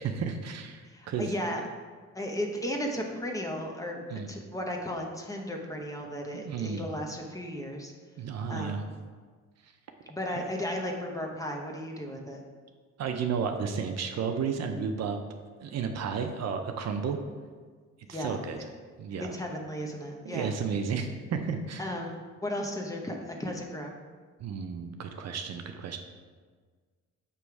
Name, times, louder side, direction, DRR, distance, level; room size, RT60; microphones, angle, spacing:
voice 1, 0.0-1.3 4.1-4.3 6.3-6.9 8.2-8.8 9.6-9.7 10.3-10.4 13.0-15.2 15.6-17.2 18.1-18.6 19.0-19.3 20.2-21.8 24.4-26.0, right 6 dB, 60° right, 5 dB, 0.6 m, -32 dB
voice 2, 0.9-1.6 2.1-7.9 8.5-8.8 10.1-12.4 18.1-18.4 19.3-20.5 21.8-23.9, equal, 10° left, 0 dB, 0.8 m, -35 dB
6.7 x 3.1 x 4.7 m, 1.5 s
cardioid pair, 90°, 30 cm